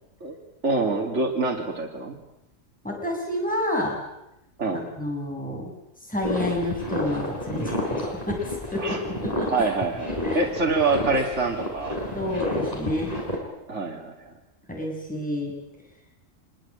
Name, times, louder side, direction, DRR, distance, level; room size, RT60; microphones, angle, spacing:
voice 1, 0.6-2.2 4.6-4.8 8.8-9.0 9.5-10.1 10.3-12.0 13.7-14.3, right 3 dB, 60° right, 0 dB, 3.2 m, -25 dB
voice 2, 2.8-4.0 4.7-5.7 6.1-8.4 8.7-9.5 10.2-10.4 12.1-13.1 14.7-15.5, left 1 dB, 5° left, -1 dB, 7.5 m, -29 dB
sound 1, 6.2-13.4, left 1 dB, 30° left, 6.6 m, -31 dB
25.5 x 23.0 x 8.9 m, 0.87 s
omnidirectional pair, 1.3 m